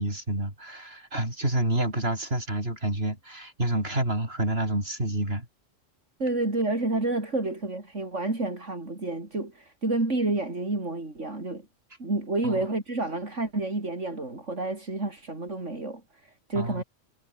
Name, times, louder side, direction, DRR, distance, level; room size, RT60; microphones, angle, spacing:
voice 1, 0.0-5.5 12.4-12.7 16.5-16.8, right 1 dB, 50° right, 7.6 m, -28 dB
voice 2, 6.2-11.7 12.0-16.8, right 2 dB, 70° right, 5.1 m, -29 dB
omnidirectional pair, 1.3 m